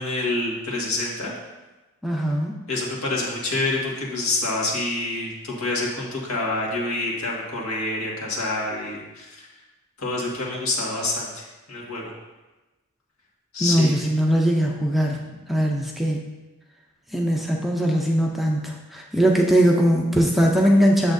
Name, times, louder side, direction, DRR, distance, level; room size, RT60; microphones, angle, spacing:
voice 1, 0.0-1.4 2.7-9.5 10.0-12.1 13.5-13.9, left 2 dB, 75° left, -3 dB, 1.8 m, -27 dB
voice 2, 2.0-2.5 13.6-15.2 15.5-16.3 17.1-21.1, equal, ahead, -1 dB, 0.5 m, -20 dB
8.5 x 7.2 x 2.6 m, 1.1 s
head